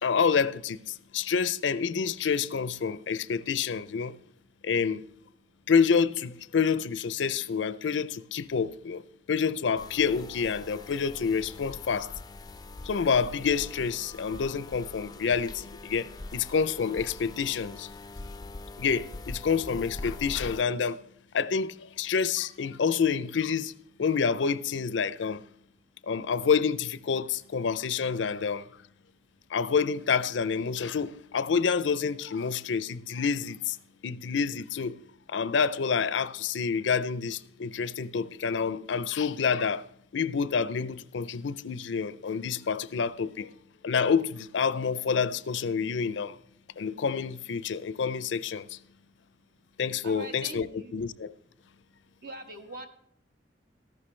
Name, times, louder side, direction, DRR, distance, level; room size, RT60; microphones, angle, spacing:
voice 1, 0.0-4.1 4.6-5.0 5.7-9.0 9.3-12.1 12.8-17.9 18.8-21.0 21.3-23.7 24.0-25.4 26.0-28.7 29.5-33.8 34.0-35.0 35.3-39.8 40.1-43.5 43.8-46.4 46.8-48.8 49.8-51.3, left 6 dB, 80° left, 0.5 m, -28 dB
sound 1, 9.8-20.6, left 2 dB, 20° left, 0.4 m, -43 dB
voice 2, 50.0-51.0 52.2-52.9, right 2 dB, 55° right, 1.3 m, -42 dB
13.5 x 11.5 x 3.2 m
head